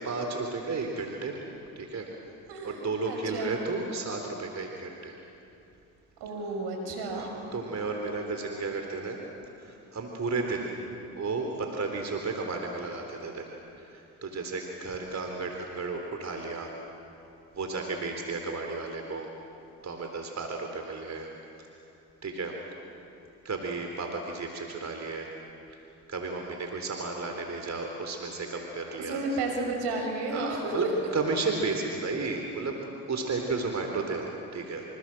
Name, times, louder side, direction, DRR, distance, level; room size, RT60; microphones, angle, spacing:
voice 1, 0.0-1.4 1.8-2.1 2.6-5.1 6.9-9.2 9.6-10.7 11.2-13.5 13.8-16.7 17.6-19.3 19.8-21.3 21.6-21.7 22.2-22.6 23.4-25.3 25.7-25.8 26.1-29.2 30.3-30.8 31.1-32.8 33.1-34.8, right 3 dB, 40° right, 3 dB, 3.9 m, -33 dB
voice 2, 2.5-3.6 6.2-7.4 29.0-30.8, right 2 dB, 70° right, 3 dB, 6.4 m, -32 dB
28.0 x 27.0 x 7.8 m, 2.8 s
hypercardioid pair, 50°, 42 cm